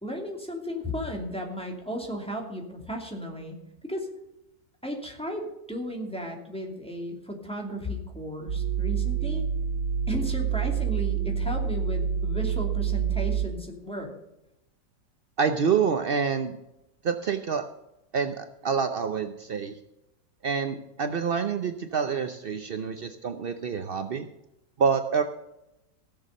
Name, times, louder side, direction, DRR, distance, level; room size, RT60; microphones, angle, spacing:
voice 1, 0.0-3.6 3.8-4.1 4.8-9.4 10.1-14.1, equal, 5° left, 0 dB, 2.5 m, -34 dB
sound 1, 8.5-13.5, right 8 dB, 80° right, 2.5 m, -27 dB
voice 2, 15.4-16.5 17.0-17.6 18.1-19.8 20.4-24.3 24.8-25.2, right 6 dB, 60° right, 8 dB, 0.5 m, -27 dB
16.5 x 7.1 x 6.5 m, 0.90 s
omnidirectional pair, 1.9 m